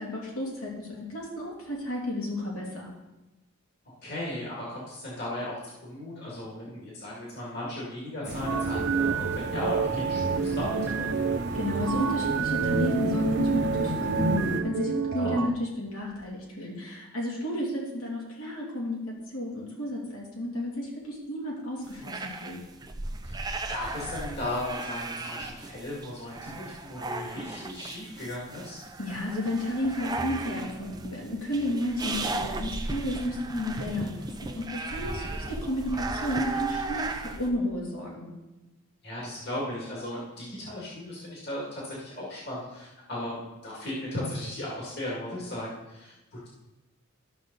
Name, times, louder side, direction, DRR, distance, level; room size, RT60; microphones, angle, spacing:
voice 1, 0.0-2.9 11.5-22.6 29.0-38.3, left 1 dB, 75° left, -4 dB, 2.9 m, -32 dB
voice 2, 4.0-11.2 15.2-15.5 23.2-23.4 23.7-28.8 35.0-35.3 39.0-46.5, left 1 dB, 45° left, -5 dB, 2.3 m, -36 dB
sound 1, 8.2-14.6, right 1 dB, 50° right, 1.1 m, -33 dB
sound 2, 8.5-15.5, right 6 dB, 70° right, 0.5 m, -29 dB
sound 3, 21.9-37.5, right 3 dB, 15° right, 0.5 m, -36 dB
12.5 x 6.5 x 4.0 m, 1.0 s
head